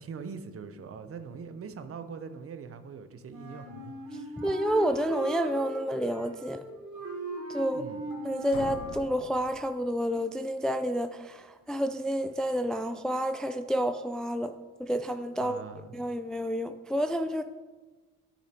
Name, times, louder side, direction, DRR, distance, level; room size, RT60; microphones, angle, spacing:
voice 1, 0.0-4.4 7.7-8.0 15.4-16.0, right 5 dB, 50° right, 10 dB, 0.8 m, -42 dB
Wind instrument woodwind instrument, 3.3-9.1, right 2 dB, 70° right, 2.9 m, -39 dB
voice 2, 4.4-6.6 7.5-7.9 8.2-15.6 15.9-17.4, equal, ahead, 9 dB, 0.3 m, -29 dB
sound 1, 8.5-10.4, left 6 dB, 70° left, 0.9 m, -44 dB
11.5 x 7.0 x 3.0 m, 1.3 s
cardioid pair, 90°, 30 cm